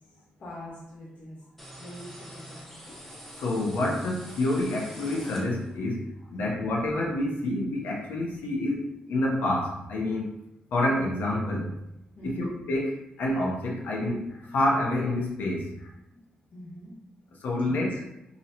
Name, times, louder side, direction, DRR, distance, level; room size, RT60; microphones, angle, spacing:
voice 1, 0.0-1.4 1.8-3.0 6.3-6.6 12.1-12.5 16.5-16.9 17.7-17.8, equal, 70° left, -7 dB, 1.5 m, -44 dB
sound 1, 1.6-5.9, equal, 5° left, 1.0 m, -45 dB
voice 2, 3.4-10.3 10.7-11.7 12.2-15.9 17.4-18.0, left 1 dB, 90° left, -1 dB, 0.9 m, -28 dB
5.1 x 3.0 x 2.9 m, 0.85 s
cardioid pair, 80°, 3 cm